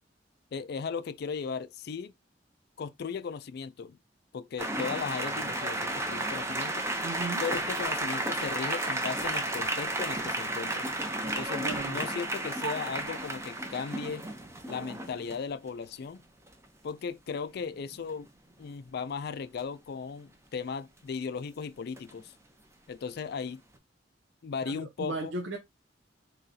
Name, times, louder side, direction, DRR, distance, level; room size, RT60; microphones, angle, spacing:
voice 1, 0.5-2.1 2.8-4.0 4.3-6.9 7.4-10.9 11.3-14.2 14.7-16.2 16.8-18.3 18.6-22.3 22.9-23.6 24.4-25.3, left 5 dB, 60° left, 0.4 m, -36 dB
sound 1, 4.6-15.4 17.3-17.4 17.7-17.9 22.0-22.2, right 2 dB, 15° right, 0.6 m, -33 dB
voice 2, 7.0-7.4 11.6-12.0 24.6-25.6, right 3 dB, 85° right, 0.6 m, -36 dB
3.9 x 3.1 x 2.7 m
head